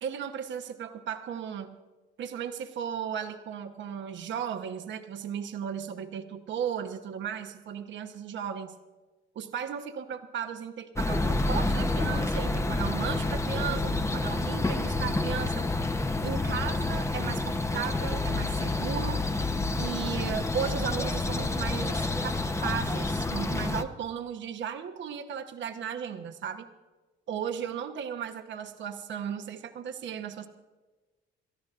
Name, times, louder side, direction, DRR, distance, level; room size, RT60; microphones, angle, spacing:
voice 1, 0.0-1.7 2.2-8.7 9.3-15.7 16.2-19.2 19.8-26.7 27.3-30.5, right 8 dB, 70° right, 7 dB, 1.0 m, -35 dB
sound 1, 11.0-23.8, left 2 dB, 15° left, 0.8 m, -29 dB
28.0 x 13.5 x 2.5 m, 1.2 s
cardioid pair, 90°, 20 cm